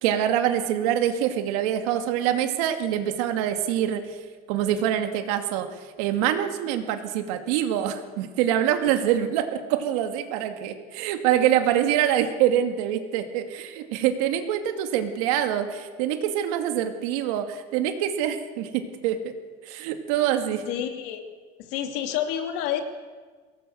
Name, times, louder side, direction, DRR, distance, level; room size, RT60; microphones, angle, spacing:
voice 1, 0.0-4.0 4.5-5.7 6.0-19.3 19.6-20.6, right 10 dB, 75° right, 6 dB, 2.4 m, -25 dB
voice 2, 20.7-21.2 21.7-22.8, left 10 dB, 60° left, 6 dB, 2.6 m, -28 dB
22.5 x 18.0 x 8.0 m, 1.5 s
cardioid pair, 165°, 19 cm